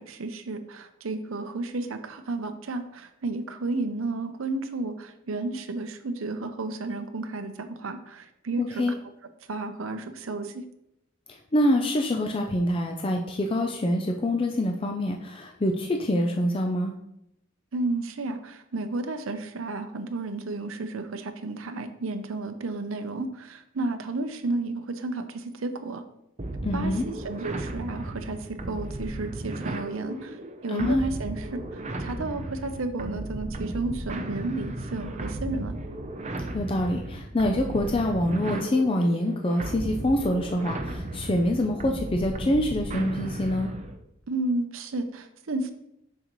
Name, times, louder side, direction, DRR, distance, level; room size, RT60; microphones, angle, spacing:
voice 1, 0.0-8.8 9.5-10.6 17.7-26.0 26.7-35.8 44.3-45.7, right 2 dB, 70° right, 8 dB, 0.7 m, -32 dB
voice 2, 8.6-8.9 11.3-17.0 26.6-27.0 30.7-31.1 36.5-43.7, left 1 dB, 25° left, 3 dB, 0.5 m, -25 dB
sound 1, 26.4-44.0, right 1 dB, 30° right, 0.6 m, -35 dB
6.5 x 6.3 x 3.1 m, 0.79 s
head